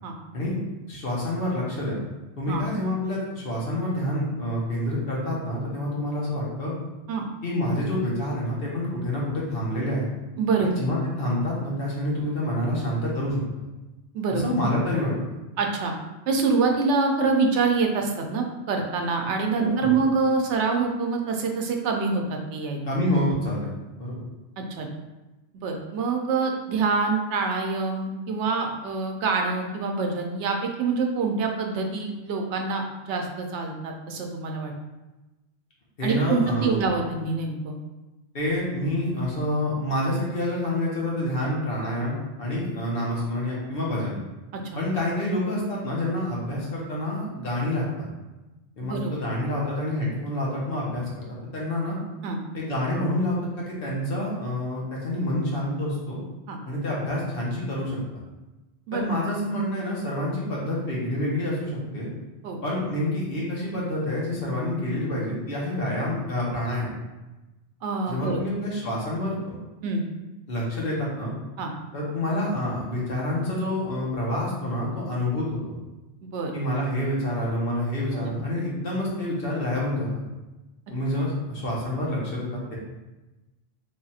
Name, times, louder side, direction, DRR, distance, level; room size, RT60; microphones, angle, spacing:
voice 1, 0.9-2.0 2.4-6.7 7.4-10.1 10.6-13.4 14.3-15.1 19.6-19.9 22.9-23.7 24.0-24.2 36.0-36.8 38.3-44.1 44.7-48.1 48.8-51.1 51.5-52.0 52.5-56.2 56.7-58.0 58.9-62.1 62.6-66.9 68.1-69.5 70.5-71.3 71.9-75.7 76.5-80.2 80.9-82.8, left 1 dB, 55° left, -5 dB, 1.1 m, -27 dB
voice 2, 10.4-10.7 14.1-14.4 15.6-15.9 16.3-22.8 24.6-24.9 25.5-34.7 36.0-37.8 44.5-44.8 48.8-49.1 52.2-52.4 56.5-56.6 58.9-59.0 62.4-62.6 67.8-68.4 69.8-70.0 71.6-71.7 76.2-76.5 78.1-78.3, right 4 dB, 90° right, 3 dB, 0.9 m, -26 dB
3.3 x 2.4 x 4.1 m, 1.1 s
omnidirectional pair, 1.2 m